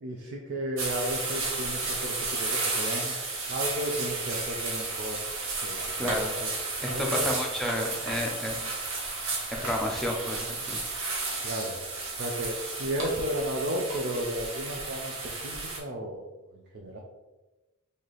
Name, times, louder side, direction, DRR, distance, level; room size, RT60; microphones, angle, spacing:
voice 1, 0.0-3.1 3.5-5.2 5.6-6.5 6.9-7.0 11.4-11.8 12.2-15.1 15.4-16.2 16.7-17.0, right 1 dB, 50° right, 0 dB, 0.5 m, -33 dB
sound 1, 0.8-15.8, right 3 dB, 70° right, 0.9 m, -33 dB
voice 2, 6.0-6.3 6.8-8.7 9.5-10.8, left 1 dB, ahead, -1 dB, 0.5 m, -31 dB
3.2 x 2.7 x 4.0 m, 1.1 s
head